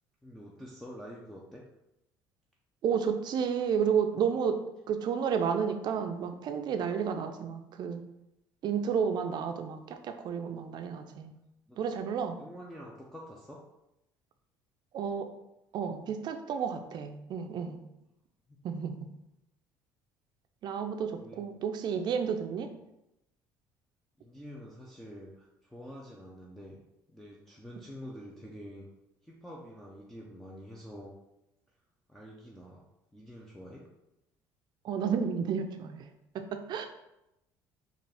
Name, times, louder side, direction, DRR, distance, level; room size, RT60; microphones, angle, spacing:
voice 1, 0.2-1.6 11.7-11.8 12.4-13.6 18.5-18.6 21.2-21.4 24.2-26.8 27.1-28.9 29.2-31.1 32.1-32.8 33.1-33.9, equal, 5° left, -3 dB, 0.6 m, -47 dB
voice 2, 2.8-4.6 4.9-8.0 8.6-11.4 11.8-12.4 14.9-15.3 15.7-17.8 18.6-19.1 20.6-22.7 34.8-36.1 36.3-36.9, right 7 dB, 55° right, 7 dB, 0.5 m, -31 dB
4.2 x 2.5 x 3.4 m, 0.88 s
supercardioid pair, 80°, 9 cm